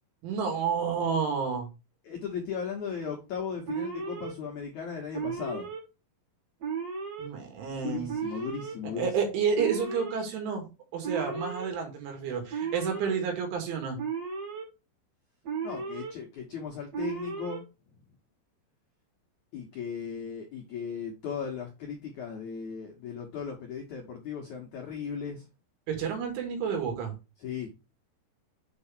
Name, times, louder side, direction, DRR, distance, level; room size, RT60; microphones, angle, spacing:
voice 1, 0.2-1.7 7.2-8.1 9.0-10.7 10.9-14.0 25.9-27.1, right 6 dB, 75° right, 3 dB, 4.7 m, -30 dB
voice 2, 2.0-5.7 7.8-9.3 15.6-17.6 19.5-25.4 27.4-27.7, left 6 dB, 90° left, 1 dB, 1.6 m, -37 dB
Alarm, 3.7-4.3 5.1-5.8 6.6-7.3 8.1-8.7 9.5-10.2 11.0-11.7 12.5-13.2 14.0-14.6 15.4-16.1 16.9-17.6, right 6 dB, 40° right, 3.1 m, -35 dB
8.1 x 4.9 x 4.4 m, 0.27 s
omnidirectional pair, 5.5 m